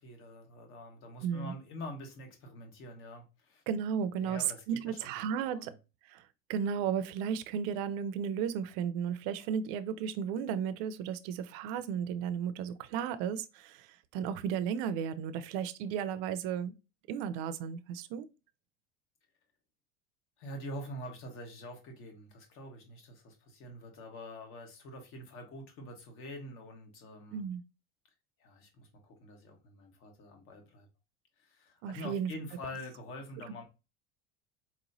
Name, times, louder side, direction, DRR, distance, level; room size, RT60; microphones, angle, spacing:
voice 1, 0.0-3.6 4.2-5.7 20.4-27.4 28.4-30.9 31.4-33.6, left 1 dB, 45° left, 1.3 m, -46 dB
voice 2, 1.2-1.5 3.7-5.7 6.1-16.7 17.1-18.3 27.3-27.6 31.8-32.3, right 8 dB, 60° right, 0.5 m, -34 dB
4.4 x 3.0 x 2.6 m
cardioid pair, 155°, 31 cm